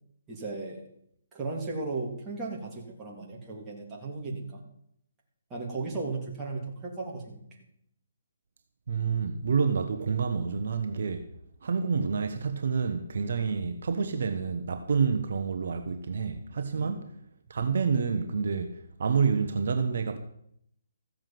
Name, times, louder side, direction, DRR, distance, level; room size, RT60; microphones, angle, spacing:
voice 1, 0.3-0.8 1.3-4.6 5.5-7.4 16.7-17.0, right 3 dB, 15° right, 3.0 m, -36 dB
voice 2, 8.9-11.2 11.6-17.1 17.5-20.2, right 5 dB, 60° right, 1.2 m, -28 dB
15.0 x 7.4 x 7.7 m
hypercardioid pair, 160°, 0 cm